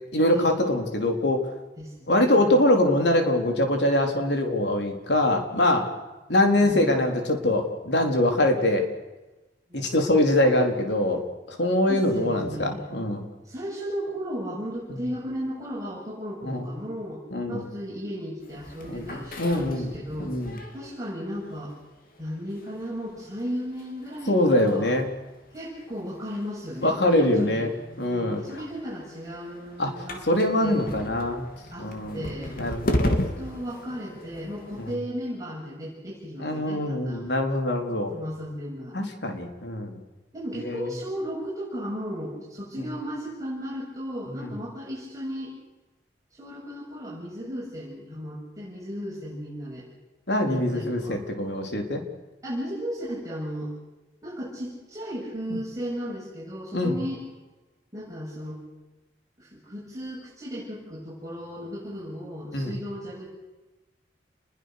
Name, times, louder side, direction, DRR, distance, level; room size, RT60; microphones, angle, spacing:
voice 1, 0.1-1.4 2.1-5.9 6.3-8.8 9.7-11.2 11.5-13.3 14.9-15.0 16.4-16.7 17.3-17.6 18.9-19.9 20.2-20.6 24.3-25.1 26.8-27.7 28.0-28.4 29.8-29.9 30.2-31.5 31.8-32.3 32.6-33.2 34.8-34.9 36.4-38.1 38.9-40.0 40.5-40.9 42.8-42.9 44.3-44.5 50.3-52.0 55.5-55.6 56.7-56.9 62.5-62.8, left 1 dB, 75° left, 3 dB, 4.1 m, -23 dB
voice 2, 1.8-2.6 6.6-7.3 9.7-9.9 11.9-12.9 13.4-17.2 17.5-20.4 20.7-21.7 22.2-24.9 25.5-27.6 28.1-30.2 30.6-31.0 31.7-31.9 32.1-32.6 32.9-37.3 38.1-39.0 40.3-45.5 46.3-49.9 50.4-51.2 52.4-53.7 54.2-57.2 57.9-58.6 59.4-63.3, equal, 20° right, -6 dB, 7.2 m, -35 dB
sound 1, 18.4-35.0, left 1 dB, 50° left, 3.0 m, -36 dB
29.5 x 21.5 x 6.8 m, 1.1 s
head